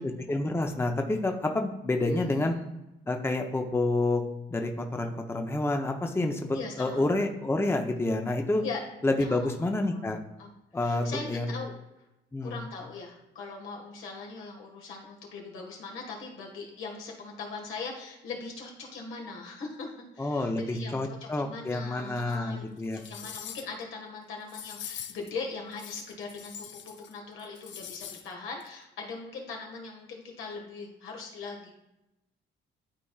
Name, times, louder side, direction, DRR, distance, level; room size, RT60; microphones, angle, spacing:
voice 1, 0.0-2.5 3.1-4.2 4.5-8.6 9.0-10.2 10.7-11.5 12.3-12.6 20.2-23.0, left 2 dB, 10° left, 3 dB, 0.7 m, -28 dB
voice 2, 2.0-2.5 6.5-7.0 8.6-8.8 9.3-9.4 9.9-10.0 10.4-10.5 10.8-11.7 12.4-19.9 20.1-30.1 30.4-31.7, left 4 dB, 85° left, 0 dB, 1.7 m, -40 dB
sound 1, 22.3-22.4 22.8-23.8 24.5-25.3 25.7-27.1 27.4-28.3 28.6-28.7, left 9 dB, 70° left, 0.6 m, -43 dB
11.5 x 4.2 x 2.4 m, 0.92 s
cardioid pair, 90°, 20 cm